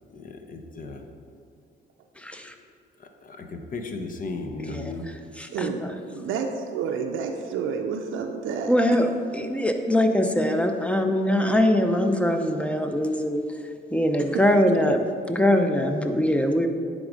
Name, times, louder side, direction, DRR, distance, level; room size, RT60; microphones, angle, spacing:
voice 1, 0.1-1.0 3.0-5.1, left 3 dB, 45° left, 4 dB, 0.9 m, -35 dB
voice 2, 2.2-2.5 4.7-4.9 5.4-5.9 6.2-6.3 8.7-13.4 13.9-15.0 15.3-16.7, left 1 dB, 5° left, 5 dB, 0.6 m, -22 dB
voice 3, 5.5-9.1 14.2-14.3, right 6 dB, 85° right, 3 dB, 0.5 m, -30 dB
9.7 x 3.6 x 5.1 m, 2.4 s
cardioid pair, 90°, 20 cm